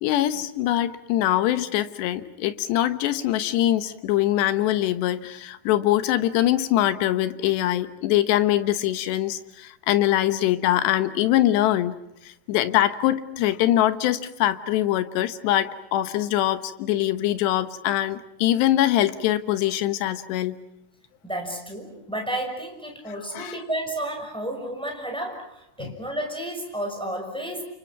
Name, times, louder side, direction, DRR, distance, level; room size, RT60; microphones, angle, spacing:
voice 1, 0.0-11.9 12.5-20.6 23.3-23.5 25.8-25.9, left 13 dB, 80° left, 12 dB, 3.3 m, -23 dB
voice 2, 21.2-27.6, right 1 dB, ahead, 2 dB, 5.6 m, -32 dB
30.0 x 28.5 x 5.9 m, 0.84 s
omnidirectional pair, 5.0 m